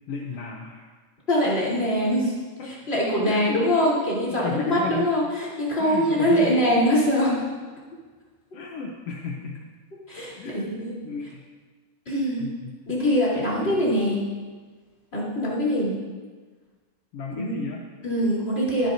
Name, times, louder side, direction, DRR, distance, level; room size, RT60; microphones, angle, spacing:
voice 1, 0.1-0.8 2.6-2.9 3.2-3.7 4.4-5.1 5.8-6.6 8.5-9.6 10.4-10.7 11.0-11.4 12.4-12.8 13.6-13.9 17.1-17.8, left 5 dB, 70° left, 0 dB, 1.5 m, -34 dB
voice 2, 1.3-2.3 2.9-7.4 10.1-10.9 12.1-12.5 12.9-14.2 15.1-15.9 17.4-17.6 18.0-18.9, equal, 15° left, -6 dB, 3.6 m, -23 dB
23.0 x 10.5 x 2.7 m, 1.4 s
omnidirectional pair, 3.8 m